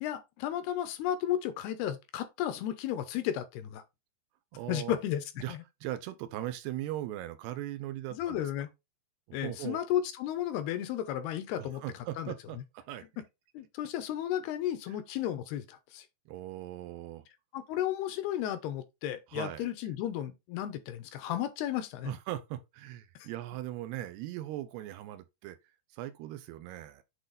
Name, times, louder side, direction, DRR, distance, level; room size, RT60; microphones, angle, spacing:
voice 1, 0.0-3.8 4.7-5.6 8.1-8.7 9.3-11.8 12.2-12.3 13.5-16.1 17.5-22.1 23.2-23.3, left 11 dB, 80° left, 2.7 m, -33 dB
voice 2, 4.5-5.0 5.4-8.7 9.3-9.8 11.6-13.0 14.9-15.0 16.3-17.3 19.3-19.8 22.0-25.6 25.9-27.0, right 13 dB, 80° right, 2.6 m, -39 dB
8.1 x 3.9 x 4.0 m
omnidirectional pair, 4.9 m